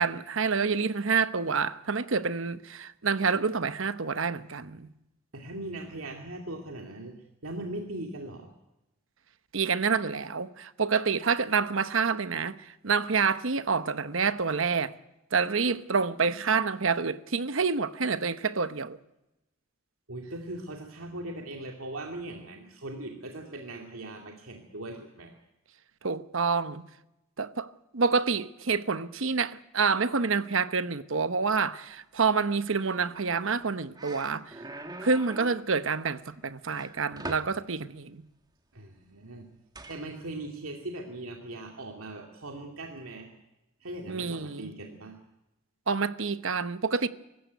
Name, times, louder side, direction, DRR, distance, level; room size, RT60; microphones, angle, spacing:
voice 1, 0.0-4.9 9.5-14.9 15.3-19.0 26.0-26.8 27.4-34.6 35.0-38.2 44.1-44.7 45.9-47.1, right 5 dB, 65° right, 1.0 m, -28 dB
voice 2, 5.3-7.2 7.4-8.5 20.1-25.3 38.7-39.4 39.9-43.3 43.8-45.2, right 1 dB, 85° right, 2.5 m, -39 dB
sound 1, 33.5-33.6 34.0-35.7 36.7-37.6 39.7-40.0, right 2 dB, 20° right, 1.6 m, -42 dB
24.0 x 14.5 x 9.3 m
head